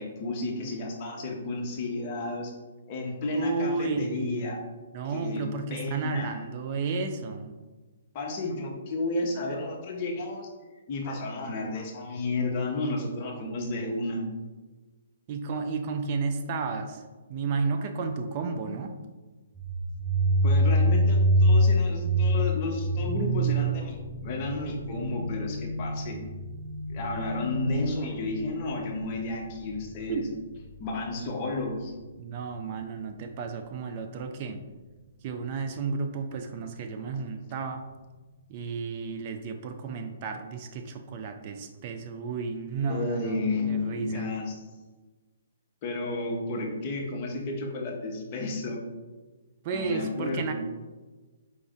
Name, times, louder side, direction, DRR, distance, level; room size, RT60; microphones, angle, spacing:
voice 1, 0.0-2.5 2.9-4.6 5.1-5.4 5.7-6.4 8.1-10.5 10.9-14.2 20.4-26.2 26.9-30.3 30.8-31.9 42.8-44.5 45.8-48.8 49.7-50.5, left 2 dB, 35° left, 0 dB, 0.9 m, -32 dB
voice 2, 3.3-4.6 4.9-7.5 15.3-17.0 17.3-18.9 30.1-30.3 32.2-34.6 35.2-37.8 38.5-43.3 43.7-44.3 49.6-50.5, right 4 dB, 40° right, 5 dB, 0.4 m, -32 dB
sound 1, 19.5-31.1, equal, 5° right, 0.7 m, -26 dB
4.9 x 2.6 x 3.5 m, 1.3 s
hypercardioid pair, 145°, 0 cm